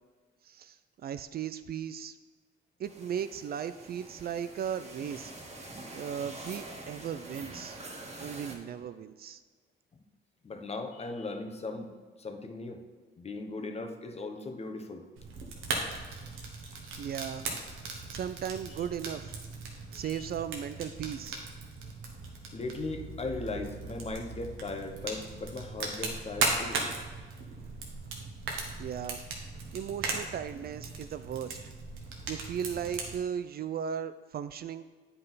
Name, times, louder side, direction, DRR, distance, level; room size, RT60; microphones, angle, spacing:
voice 1, 0.4-2.2 2.8-5.3 5.9-7.8 8.2-9.4 17.0-17.5 18.1-19.4 19.9-21.4 28.8-29.2 29.7-31.6 32.3-34.9, right 8 dB, 50° right, 12 dB, 0.4 m, -36 dB
sound 1, 2.8-8.6, right 2 dB, 35° right, 1.6 m, -45 dB
voice 2, 10.4-12.8 13.2-15.0 16.7-16.8 19.9-20.3 22.5-26.8, left 3 dB, 30° left, 6 dB, 0.9 m, -38 dB
Fire, 15.2-33.1, right 3 dB, 90° right, 1.3 m, -38 dB
8.7 x 5.4 x 4.0 m, 1.4 s
cardioid pair, 90°, 20 cm